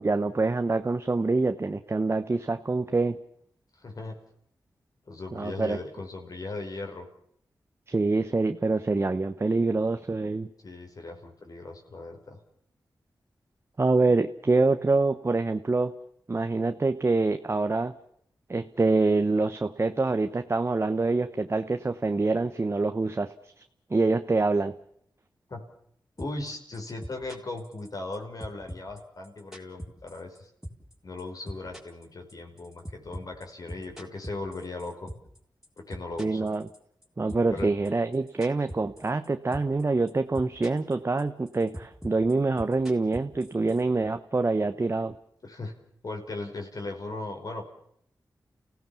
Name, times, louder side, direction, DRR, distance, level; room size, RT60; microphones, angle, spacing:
voice 1, 0.0-3.2 5.3-5.8 7.9-10.5 13.8-15.9 16.3-17.9 18.5-23.3 23.9-24.7 36.2-36.7 37.2-45.2, right 3 dB, 35° right, 8 dB, 1.0 m, -25 dB
voice 2, 3.8-4.2 5.1-7.1 10.6-12.4 25.5-25.6 26.2-30.5 31.0-35.1 35.8-36.5 37.5-37.7 45.4-45.7 46.0-47.7, left 2 dB, 55° left, 2 dB, 5.2 m, -38 dB
sound 1, 26.2-26.5 26.7-28.1 28.4-30.4 30.6-30.9 31.2-35.4 35.6-37.0 37.3-39.3 39.5-39.8 40.1-40.9 41.2-43.8, equal, 5° right, 4.5 m, -41 dB
29.5 x 16.5 x 7.2 m, 0.70 s
cardioid pair, 70°, 7 cm